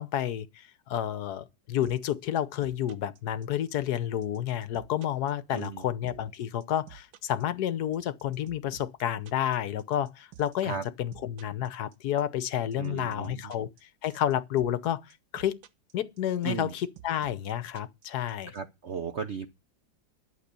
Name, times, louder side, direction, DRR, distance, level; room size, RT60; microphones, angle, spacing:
voice 1, 0.0-13.7 14.0-15.0 15.3-15.6 15.9-18.5, left 11 dB, 65° left, 1.2 m, -30 dB
sound 1, 1.8-18.6, right 11 dB, 85° right, 1.7 m, -51 dB
voice 2, 5.5-5.8 10.6-10.8 12.8-13.5 16.4-16.7 18.5-19.5, right 6 dB, 55° right, 0.8 m, -35 dB
11.5 x 6.7 x 6.7 m
omnidirectional pair, 2.1 m